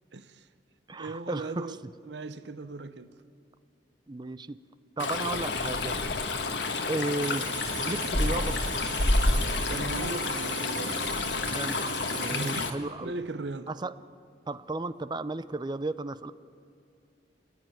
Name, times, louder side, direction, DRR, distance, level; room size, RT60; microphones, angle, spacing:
voice 1, 0.1-0.5 1.0-1.8 2.1-3.1 9.6-11.0 12.3-13.7, right 3 dB, 75° right, 0.8 m, -38 dB
voice 2, 0.9-1.8 4.1-4.6 5.0-6.0 6.9-7.6 7.8-8.6 11.5-11.8 12.2-13.1 13.7-13.9 14.5-16.3, right 2 dB, 25° right, 0.6 m, -34 dB
Stream, 5.0-12.7, left 2 dB, 75° left, 1.5 m, -29 dB
sound 1, 7.2-12.7, right 7 dB, 50° right, 1.8 m, -41 dB
30.0 x 10.0 x 9.2 m
head